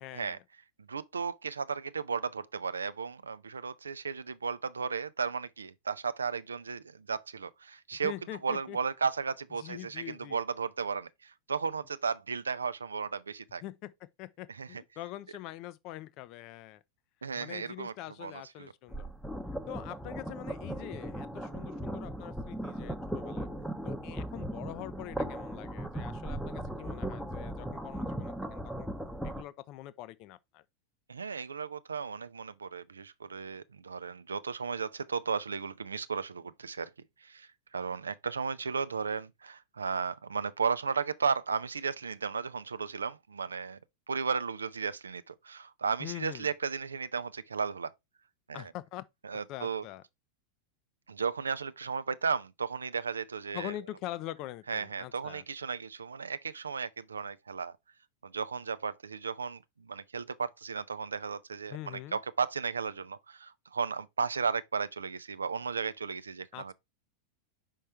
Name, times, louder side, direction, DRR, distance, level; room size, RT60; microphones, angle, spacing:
voice 1, 0.0-0.4 7.9-8.8 9.6-10.4 13.6-13.9 14.2-16.8 17.3-19.1 19.7-23.5 23.8-28.9 29.2-30.6 46.0-46.5 48.5-49.0 49.5-50.0 53.5-55.4 61.7-62.2 66.5-66.7, left 15 dB, 40° left, 0.5 m, -44 dB
voice 2, 0.9-8.1 8.4-13.6 14.6-14.8 17.2-17.9 18.2-18.3 18.6-18.7 31.1-36.9 37.2-43.8 44.1-47.9 48.5-48.7 49.2-49.8 51.1-53.7 54.7-57.8 58.2-66.7, right 5 dB, 75° right, 0.4 m, -34 dB
sound 1, 18.9-29.4, right 1 dB, ahead, 0.8 m, -38 dB
5.4 x 5.4 x 3.4 m
figure-of-eight pair, 90°, 0 cm